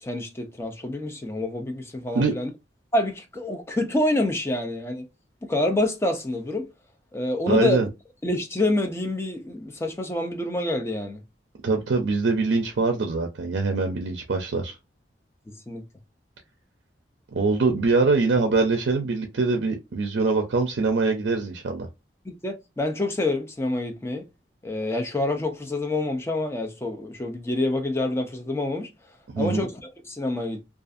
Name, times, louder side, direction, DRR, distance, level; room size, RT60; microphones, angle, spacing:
voice 1, 0.0-2.5 2.9-5.1 5.4-6.7 7.1-7.8 8.2-11.2 15.5-15.8 22.3-24.2 24.6-28.9 29.4-30.6, left 2 dB, 15° left, 0.4 m, -27 dB
voice 2, 7.5-7.9 11.6-14.8 17.3-21.9 29.3-29.6, right 3 dB, 70° right, 0.5 m, -23 dB
2.5 x 2.4 x 2.4 m
head